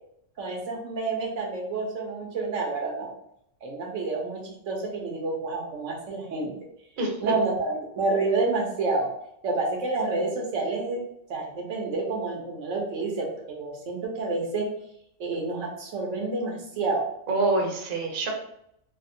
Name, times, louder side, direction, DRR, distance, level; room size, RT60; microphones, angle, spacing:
voice 1, 0.4-3.1 3.6-6.5 7.2-9.1 9.4-11.0 11.3-14.7 15.2-17.1, right 3 dB, 85° right, 0 dB, 1.1 m, -29 dB
voice 2, 7.0-7.3 17.3-18.3, right 2 dB, 50° right, 0 dB, 0.7 m, -26 dB
3.4 x 2.1 x 2.6 m, 0.73 s
omnidirectional pair, 1.3 m